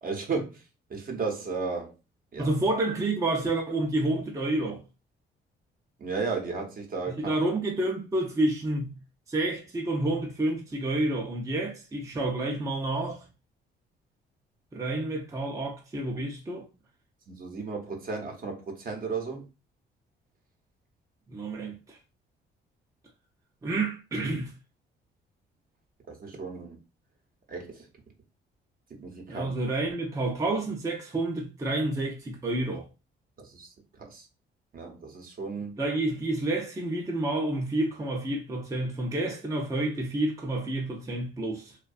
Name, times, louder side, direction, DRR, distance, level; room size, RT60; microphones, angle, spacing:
voice 1, 0.0-0.6 0.9-1.9 2.3-2.5 6.0-7.4 17.3-19.5 26.1-26.8 27.5-27.9 28.9-29.5 33.4-34.3 34.7-35.8, right 4 dB, 45° right, 0.8 m, -34 dB
voice 2, 2.4-4.8 7.1-9.0 9.3-13.3 14.7-16.7 21.3-22.0 23.6-24.5 29.3-32.9 35.8-41.8, right 2 dB, 15° right, 0.5 m, -29 dB
2.5 x 2.2 x 2.3 m
cardioid pair, 90°, 20 cm